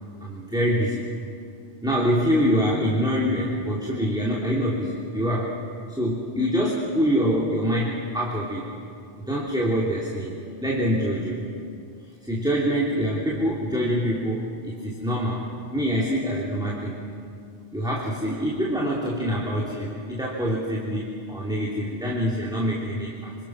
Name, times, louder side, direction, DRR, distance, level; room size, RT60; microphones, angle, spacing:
voice 1, 0.2-1.0 1.8-5.6 5.9-8.7 9.2-10.3 10.6-11.4 12.2-17.0 17.7-23.3, equal, 5° right, -5 dB, 2.8 m, -25 dB
26.5 x 26.5 x 6.2 m, 2.4 s
omnidirectional pair, 1.2 m